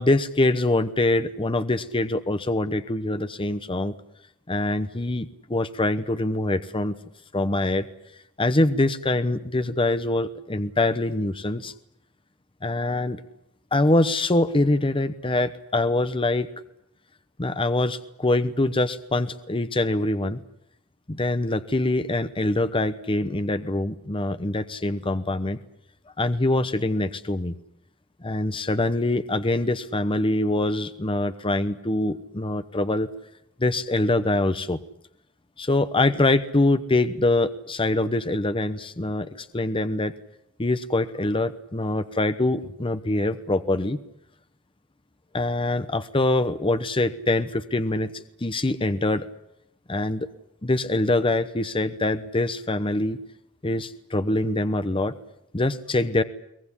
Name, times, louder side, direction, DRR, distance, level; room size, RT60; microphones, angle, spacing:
voice 1, 0.0-3.9 4.5-6.9 7.3-7.9 8.4-11.7 12.6-13.2 13.7-16.5 17.4-20.4 21.1-25.6 26.2-27.5 28.2-33.1 33.6-34.8 35.6-40.1 40.6-44.0 45.3-49.2 49.9-50.3 50.6-53.2 53.6-55.1 55.5-56.2, left 2 dB, 25° left, 11 dB, 1.0 m, -24 dB
23.0 x 18.5 x 9.9 m, 0.79 s
head